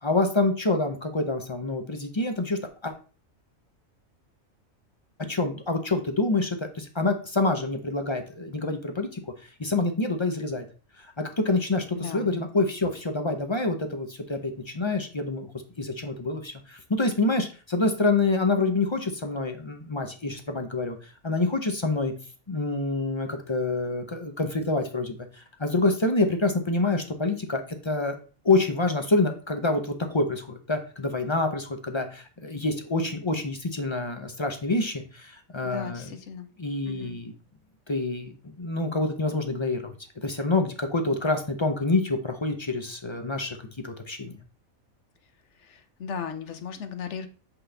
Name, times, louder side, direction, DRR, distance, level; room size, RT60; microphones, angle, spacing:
voice 1, 0.0-2.9 5.3-9.2 9.6-10.7 11.0-15.5 15.8-21.0 21.2-22.1 22.5-28.2 28.4-36.0 36.6-37.3 37.9-38.3 38.6-39.9 40.2-43.6 43.8-44.4, left 2 dB, 30° left, 6 dB, 0.5 m, -27 dB
voice 2, 11.9-12.3 35.6-36.5 36.9-37.2 45.6-47.3, left 6 dB, 65° left, 9 dB, 1.0 m, -36 dB
7.7 x 3.8 x 3.3 m, 0.37 s
omnidirectional pair, 1.4 m